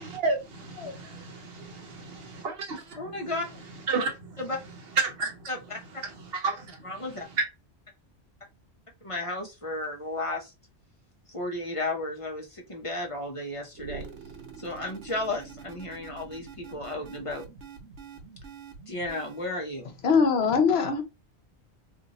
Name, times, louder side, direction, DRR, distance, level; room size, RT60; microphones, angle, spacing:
voice 1, 0.0-7.4, right 3 dB, 60° right, 1.0 m, -33 dB
voice 2, 3.0-3.5 4.4-4.6 5.5-5.8 6.8-7.3 9.0-10.5 11.3-14.1 14.6-17.4 18.9-19.9, left 2 dB, 35° left, 0.7 m, -33 dB
sound 1, 13.7-19.5, right 6 dB, 90° right, 1.1 m, -45 dB
voice 3, 20.0-21.0, left 5 dB, 65° left, 1.0 m, -22 dB
2.6 x 2.6 x 4.0 m
omnidirectional pair, 1.2 m